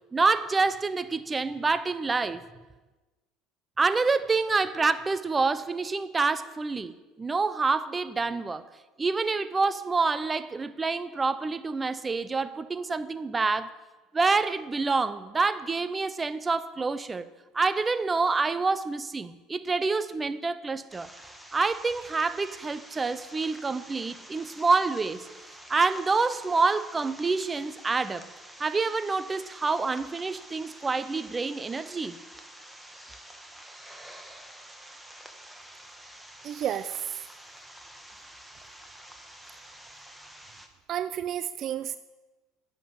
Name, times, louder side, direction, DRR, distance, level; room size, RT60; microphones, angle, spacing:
voice 1, 0.1-2.4 3.8-8.6 9.0-13.7 14.1-17.3 17.5-21.1 21.5-25.3 25.7-28.2 28.6-32.2, right 4 dB, 20° right, 14 dB, 0.7 m, -27 dB
sound 1, 20.9-40.7, right 1 dB, 5° right, 1.6 m, -48 dB
voice 2, 36.4-37.2 40.9-42.0, right 10 dB, 50° right, 14 dB, 0.5 m, -31 dB
10.0 x 7.6 x 8.5 m, 1.2 s
hypercardioid pair, 80°, 0 cm